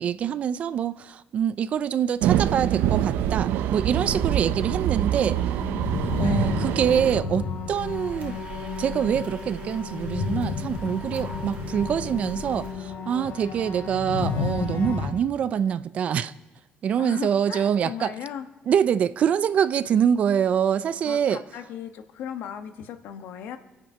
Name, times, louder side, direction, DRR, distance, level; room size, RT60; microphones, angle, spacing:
voice 1, 0.0-5.4 6.2-8.4 8.8-16.3 16.8-18.1 18.7-21.4, right 8 dB, 40° right, 0.5 m, -25 dB
sound 1, 2.2-7.2, right 11 dB, 80° right, 0.7 m, -25 dB
sound 2, 4.0-15.1, left 5 dB, 90° left, 4.5 m, -32 dB
voice 2, 6.2-6.6 17.0-18.5 21.0-23.6, left 9 dB, 70° left, 1.3 m, -37 dB
sound 3, 7.7-12.7, right 5 dB, 55° right, 2.5 m, -41 dB
26.0 x 8.8 x 5.6 m
cardioid pair, 165°, 3 cm